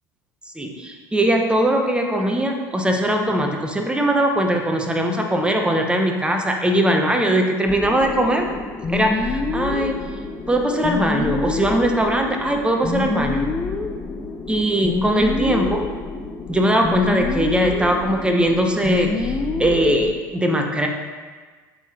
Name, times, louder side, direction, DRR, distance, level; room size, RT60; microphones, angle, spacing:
voice 1, 0.6-8.5 8.9-10.1 10.5-13.5 14.5-15.8 16.5-20.9, right 1 dB, 10° right, 3 dB, 1.0 m, -20 dB
sound 1, 7.7-20.1, left 3 dB, 25° left, 0.7 m, -27 dB
8.2 x 3.8 x 4.3 m, 1.5 s
hypercardioid pair, 80°, 10 cm